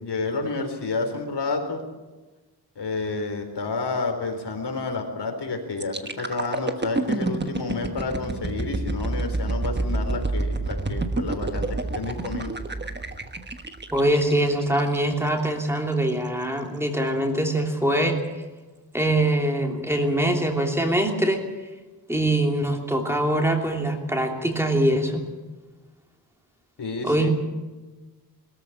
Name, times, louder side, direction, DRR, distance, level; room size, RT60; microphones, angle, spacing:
voice 1, 0.0-1.8 2.8-12.5 26.8-27.3, left 3 dB, 80° left, 4 dB, 4.1 m, -30 dB
sound 1, 5.8-15.6 16.1-16.3, right 2 dB, 25° right, 1.3 m, -29 dB
voice 2, 13.9-18.2 18.9-21.4 22.1-25.2 27.0-27.3, right 1 dB, 5° right, 2 dB, 2.9 m, -23 dB
21.5 x 14.0 x 9.9 m, 1.2 s
wide cardioid pair, 155°, 40 cm